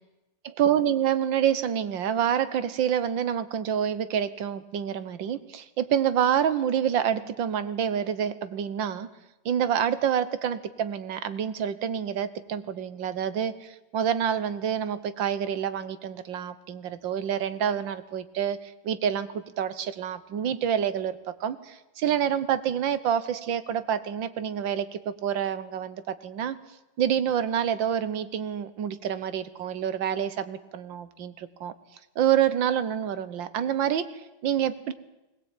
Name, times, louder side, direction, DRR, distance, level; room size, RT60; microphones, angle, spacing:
voice 1, 0.5-9.1 9.5-26.6 27.0-31.7 32.2-34.9, right 9 dB, 90° right, 14 dB, 1.8 m, -27 dB
20.5 x 19.0 x 9.1 m, 0.99 s
omnidirectional pair, 2.0 m